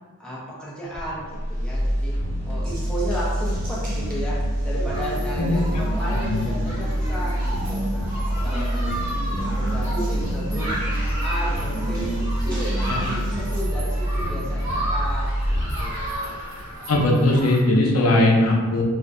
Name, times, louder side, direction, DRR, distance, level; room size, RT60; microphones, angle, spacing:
voice 1, 0.2-2.1 2.4-9.0 9.3-10.7 11.2-16.4, equal, 5° left, -7 dB, 0.6 m, -34 dB
sound 1, 0.9-17.0 17.4-17.5, equal, 40° left, 1.0 m, -26 dB
Water tap faucet, 2.6-13.6, right 1 dB, 40° right, 0.6 m, -35 dB
Human group actions, 4.9-17.6, right 1 dB, 80° right, 1.1 m, -34 dB
voice 2, 6.3-6.6 12.9-13.0 16.9-18.8, left 1 dB, 75° left, -1 dB, 0.5 m, -19 dB
2.5 x 2.1 x 3.7 m, 1.4 s
head